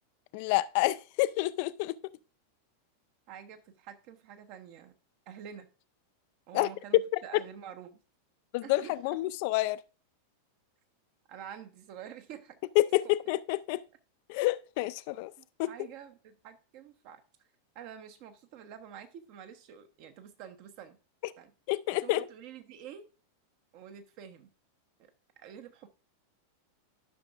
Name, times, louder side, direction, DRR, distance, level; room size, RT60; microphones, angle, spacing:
voice 1, 0.3-1.9 6.5-6.7 7.1-7.2 8.5-9.8 12.8-13.8 14.3-15.3 15.6-15.7 21.7-22.2, left 18 dB, 45° left, 0.3 m, -28 dB
voice 2, 3.3-4.9 5.3-5.7 6.5-8.0 8.6-9.2 11.3-12.6 13.0-13.1 15.4-17.2 17.7-21.0 21.4-21.5 22.0-23.1 23.7-24.5 25.4-25.9, right 8 dB, 45° right, 0.9 m, -47 dB
12.0 x 5.9 x 2.5 m
figure-of-eight pair, 90°, 0 cm